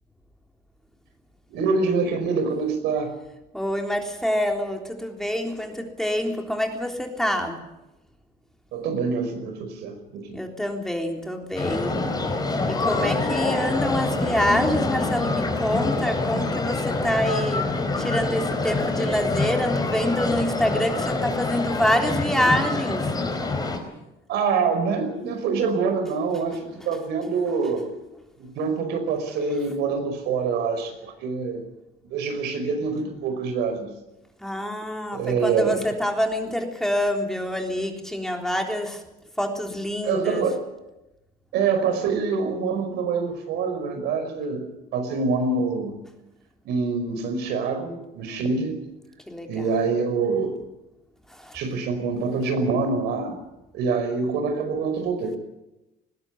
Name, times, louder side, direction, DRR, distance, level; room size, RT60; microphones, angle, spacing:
voice 1, 1.5-3.1 8.7-10.4 24.3-27.9 28.4-31.6 32.1-33.9 35.1-35.9 40.0-40.6 41.5-44.6 44.9-46.0 46.7-48.8 49.5-50.6 51.5-53.4 53.7-55.4, right 4 dB, 85° right, 7 dB, 5.3 m, -25 dB
voice 2, 3.5-7.6 10.3-12.0 12.7-17.6 18.0-23.1 34.4-39.0 39.4-40.4 49.3-49.6 51.3-51.6, equal, 5° left, 2 dB, 3.6 m, -26 dB
sound 1, 11.6-23.8, left 3 dB, 25° left, 4.6 m, -26 dB
20.0 x 16.5 x 9.7 m, 0.96 s
cardioid pair, 110°, 17 cm